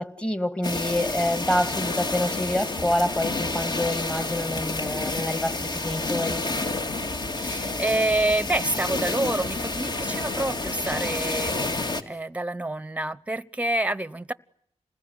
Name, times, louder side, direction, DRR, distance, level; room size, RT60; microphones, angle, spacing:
voice 1, 0.0-6.4, left 1 dB, 10° left, 1.9 m, -27 dB
sound 1, 0.6-12.0, left 2 dB, 40° left, 2.1 m, -29 dB
voice 2, 7.3-11.6 12.0-14.3, right 1 dB, 10° right, 1.0 m, -27 dB
28.5 x 20.5 x 9.8 m
wide cardioid pair, 110°, 12 cm